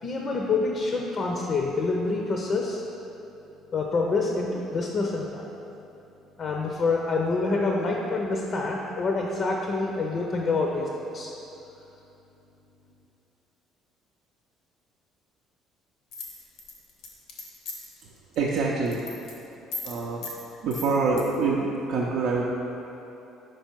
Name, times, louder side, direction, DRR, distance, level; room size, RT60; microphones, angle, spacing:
voice 1, 0.0-2.8 3.7-5.5 6.4-11.3, left 3 dB, 50° left, 0 dB, 0.5 m, -27 dB
sound 1, 16.1-18.0 18.3-18.6 18.9-19.3 19.7-20.0 20.2-20.4 20.7-21.2, left 3 dB, 80° left, 0.8 m, -37 dB
voice 2, 18.0-19.1 19.8-20.3 20.6-22.4, right 4 dB, 70° right, -4 dB, 0.5 m, -26 dB
5.0 x 4.6 x 4.5 m, 2.9 s
supercardioid pair, 75°, 0 cm